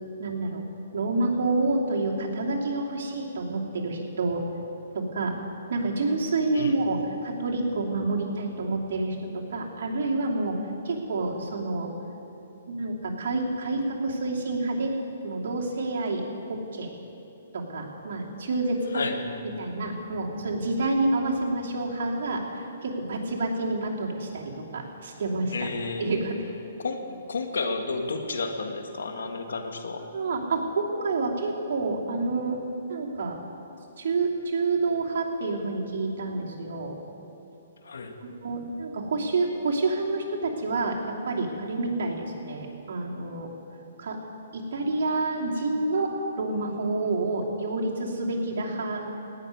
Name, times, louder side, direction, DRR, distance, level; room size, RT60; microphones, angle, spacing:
voice 1, 0.2-0.6 0.9-4.4 4.9-5.3 5.7-10.5 10.8-11.9 12.7-14.9 15.2-16.2 16.5-16.9 17.5-18.9 19.6-25.7 26.0-26.5 30.1-32.6 32.9-33.4 34.0-36.9 38.2-41.0 41.3-43.5 44.0-44.2 44.5-46.1 46.4-49.1, right 2 dB, 65° right, -2 dB, 2.9 m, -28 dB
voice 2, 18.9-19.4 25.5-26.1 26.8-30.1 37.8-38.2, left 3 dB, 85° left, 6 dB, 1.6 m, -31 dB
17.5 x 6.8 x 9.6 m, 2.9 s
hypercardioid pair, 145°, 0 cm